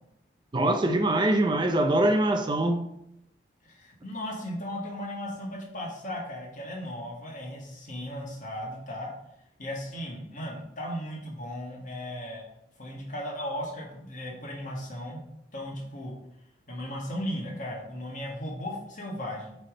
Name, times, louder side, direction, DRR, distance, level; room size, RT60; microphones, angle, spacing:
voice 1, 0.5-2.8, right 1 dB, 25° right, 6 dB, 0.5 m, -23 dB
voice 2, 3.6-9.1 9.6-12.4 12.8-15.2 15.5-16.2 16.7-19.6, equal, 50° left, -2 dB, 1.8 m, -36 dB
8.2 x 3.4 x 3.9 m, 0.80 s
head